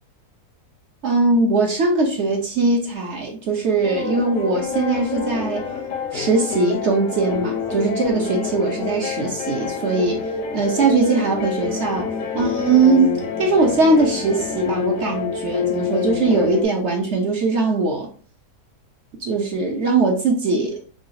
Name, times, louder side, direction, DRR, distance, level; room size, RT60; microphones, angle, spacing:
voice 1, 1.0-5.6 6.1-10.2 10.5-12.1 12.3-18.1 19.2-20.8, right 3 dB, 55° right, 0 dB, 0.8 m, -20 dB
sound 1, 3.8-16.6, left 5 dB, 70° left, 1.1 m, -27 dB
4.8 x 2.4 x 2.6 m, 0.41 s
omnidirectional pair, 1.7 m